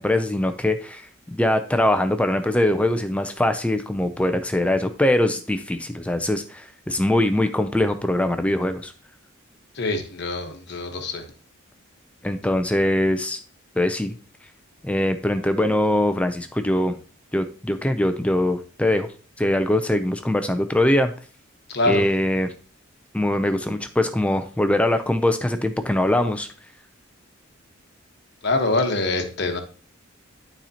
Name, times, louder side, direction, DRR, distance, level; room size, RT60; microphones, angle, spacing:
voice 1, 0.0-8.9 12.2-13.4 13.8-14.1 14.8-17.0 17.3-19.1 19.4-21.1 21.9-22.5 23.1-26.5, left 1 dB, 5° left, 8 dB, 0.4 m, -22 dB
voice 2, 9.7-11.2 21.7-22.0 28.4-29.6, left 2 dB, 50° left, 4 dB, 1.1 m, -24 dB
12.0 x 4.3 x 2.8 m, 0.40 s
head